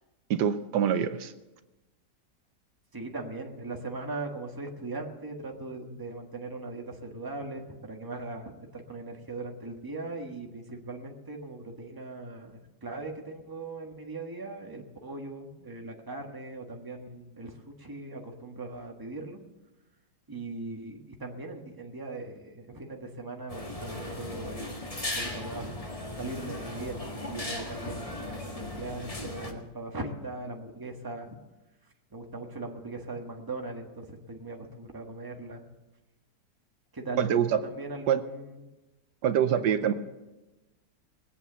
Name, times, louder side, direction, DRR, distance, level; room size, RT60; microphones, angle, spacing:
voice 1, 0.3-1.3 37.2-37.6 38.1-38.2 39.2-39.9, right 9 dB, 75° right, 10 dB, 1.3 m, -25 dB
voice 2, 2.9-19.4 20.3-24.8 25.1-25.7 26.2-31.4 32.1-35.6 36.9-38.6 39.5-39.9, right 2 dB, 15° right, 1 dB, 1.4 m, -39 dB
sound 1, 23.5-29.5, left 1 dB, 20° left, 1.7 m, -37 dB
20.0 x 8.3 x 6.8 m, 1.1 s
omnidirectional pair, 1.8 m